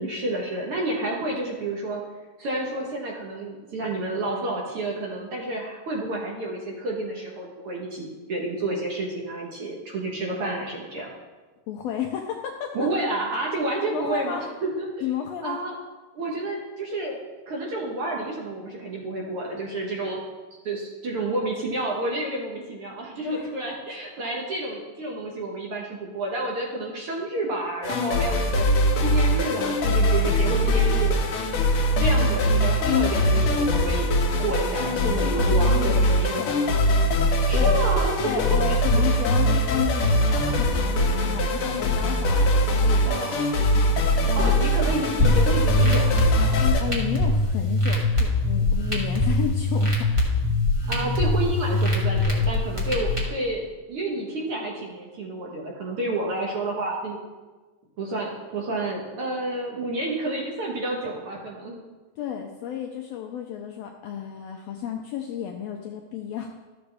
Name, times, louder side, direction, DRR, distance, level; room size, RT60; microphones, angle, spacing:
voice 1, 0.0-2.0 2.4-11.1 12.7-15.0 15.4-15.7 16.1-17.2 17.5-20.3 20.6-28.7 29.0-31.2 32.0-36.4 37.5-39.1 43.0-43.5 44.4-46.5 50.9-57.2 58.0-61.8, right 2 dB, 60° right, -1 dB, 1.6 m, -30 dB
voice 2, 11.7-12.9 13.9-14.5 15.0-15.6 23.2-23.5 35.2-36.7 37.3-37.7 38.2-43.2 44.2-44.5 46.8-50.1 62.2-66.5, left 9 dB, 80° left, 2 dB, 1.5 m, -33 dB
sound 1, 27.8-46.8, left 1 dB, 65° left, 1.5 m, -22 dB
sound 2, 45.2-53.2, left 2 dB, 25° right, 0.7 m, -23 dB
13.0 x 7.0 x 3.4 m, 1.3 s
omnidirectional pair, 3.5 m